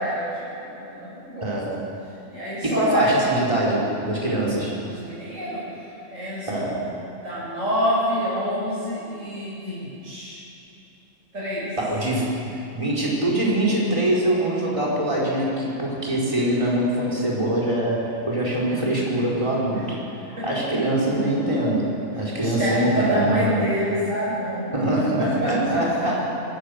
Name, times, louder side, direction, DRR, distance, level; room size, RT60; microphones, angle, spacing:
voice 1, 0.0-1.5 2.3-3.1 4.9-5.6 6.1-6.8 7.2-10.4 11.3-11.7 19.7-19.8 20.4-20.5 22.1-24.7 25.2-25.8, equal, 65° right, -9 dB, 6.3 m, -27 dB
voice 2, 1.4-1.8 2.6-4.7 6.5-6.9 11.8-12.4 12.7-20.0 20.3-21.9 22.1-23.6 24.7-26.3, right 1 dB, 20° right, -4 dB, 5.0 m, -23 dB
23.0 x 19.5 x 6.8 m, 2.8 s
omnidirectional pair, 1.5 m